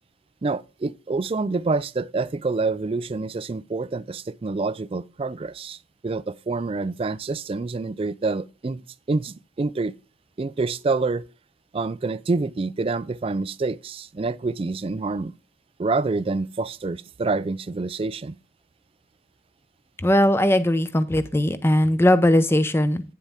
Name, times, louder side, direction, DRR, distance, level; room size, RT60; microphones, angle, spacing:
voice 1, 0.4-5.8 6.0-8.8 9.1-9.9 10.4-11.3 11.7-15.3 15.8-18.4, right 3 dB, 30° right, 0.3 m, -27 dB
voice 2, 20.0-23.0, left 1 dB, 15° left, 0.6 m, -19 dB
9.4 x 7.3 x 3.5 m
head